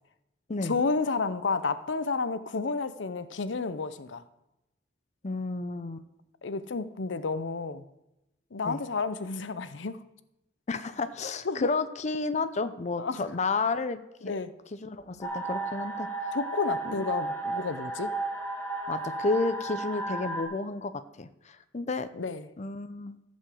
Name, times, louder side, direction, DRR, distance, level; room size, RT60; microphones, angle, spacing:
voice 1, 0.6-4.3 6.4-7.9 8.5-10.0 11.4-11.7 13.0-13.3 14.2-14.5 16.3-18.1 22.1-22.5, left 4 dB, 85° left, 0.7 m, -31 dB
voice 2, 5.2-6.0 8.6-8.8 10.7-14.3 14.8-16.1 16.8-17.0 18.9-22.1 22.6-23.2, left 3 dB, 40° left, 0.6 m, -31 dB
sound 1, 15.2-20.4, right 2 dB, 15° left, 2.4 m, -33 dB
15.0 x 5.3 x 7.7 m
head